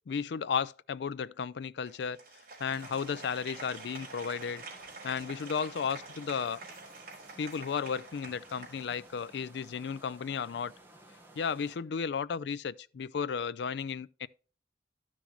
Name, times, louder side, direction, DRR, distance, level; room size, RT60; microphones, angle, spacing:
voice 1, 0.1-2.2 2.6-4.6 5.0-6.6 7.4-10.7 11.4-14.3, left 6 dB, 75° left, 0.4 m, -34 dB
Applause, 1.9-9.4, right 3 dB, 50° right, 3.3 m, -48 dB
sound 1, 2.6-11.8, right 1 dB, 10° right, 1.2 m, -56 dB
sound 2, 4.1-9.2, left 1 dB, 20° left, 4.7 m, -69 dB
13.0 x 5.9 x 3.0 m
head